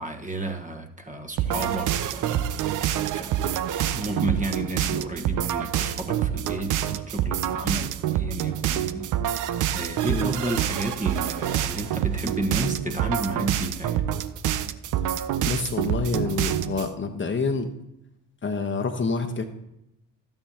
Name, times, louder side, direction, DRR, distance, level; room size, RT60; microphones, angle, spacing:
voice 1, 0.0-2.5 3.1-3.5 3.9-9.1 9.7-14.0, right 1 dB, 20° right, 4 dB, 1.3 m, -32 dB
sound 1, 1.4-16.9, right 11 dB, 50° right, 0.6 m, -27 dB
voice 2, 15.1-17.7 18.4-19.4, left 4 dB, 30° left, 5 dB, 1.2 m, -28 dB
13.0 x 9.0 x 2.9 m, 0.84 s
hypercardioid pair, 55°, 40 cm